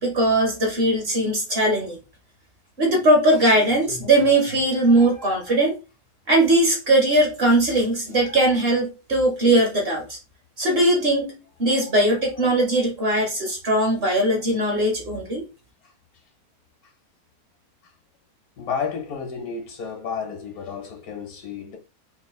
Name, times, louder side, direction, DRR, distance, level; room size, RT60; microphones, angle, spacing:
voice 1, 0.0-2.0 2.8-5.7 6.3-10.2 10.6-15.4, right 1 dB, 45° right, 1.0 m, -20 dB
voice 2, 18.6-21.8, left 6 dB, 70° left, 1.4 m, -32 dB
3.2 x 2.4 x 3.5 m
omnidirectional pair, 1.6 m